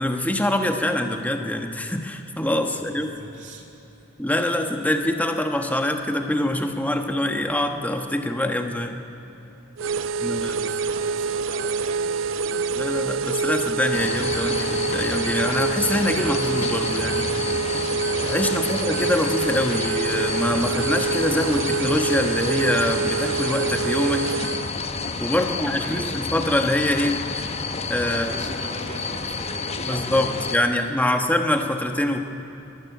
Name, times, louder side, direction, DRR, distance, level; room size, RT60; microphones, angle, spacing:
voice 1, 0.0-3.1 4.2-9.0 10.2-10.5 12.8-17.3 18.2-24.3 25.2-27.2 27.9-28.3 29.8-32.2, left 1 dB, 10° left, 5 dB, 1.1 m, -24 dB
voice 2, 3.2-3.7 9.9-12.8 25.3-26.2 28.1-31.3, right 2 dB, 40° right, 1 dB, 2.5 m, -40 dB
sound 1, 9.8-24.7, right 4 dB, 80° right, 0.5 m, -26 dB
sound 2, 13.9-30.6, left 4 dB, 35° left, 0.9 m, -30 dB
23.5 x 12.0 x 9.4 m, 2.9 s
head